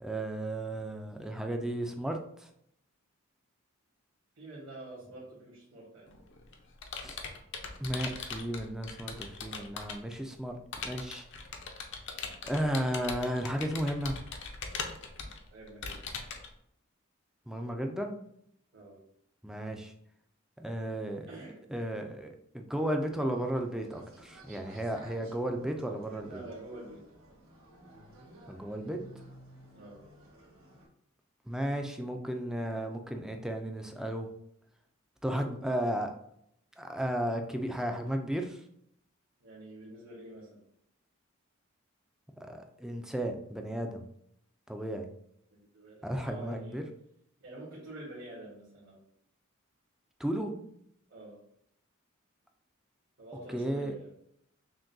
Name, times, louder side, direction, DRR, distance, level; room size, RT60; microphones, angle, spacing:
voice 1, 0.0-2.5 7.0-7.2 7.8-11.3 12.4-14.2 17.5-18.2 19.4-19.9 20.6-21.3 21.7-26.3 28.5-29.0 31.5-34.3 35.2-36.1 36.8-38.6 42.4-44.0 44.7-45.1 46.0-46.8 50.2-50.6 53.5-53.9, right 1 dB, 5° right, 4 dB, 0.4 m, -34 dB
voice 2, 4.3-6.1 15.5-16.0 18.7-19.0 21.3-21.6 26.2-27.0 29.7-30.0 39.4-40.6 45.5-46.8 47.4-49.0 51.1-51.4 53.2-54.1, right 2 dB, 60° right, -8 dB, 1.4 m, -47 dB
Computer keyboard, 6.1-10.1 10.7-16.5, left 5 dB, 60° left, 0.6 m, -40 dB
sound 1, 22.7-30.9, right 1 dB, 80° right, 1.1 m, -54 dB
5.9 x 2.2 x 2.6 m, 0.72 s
head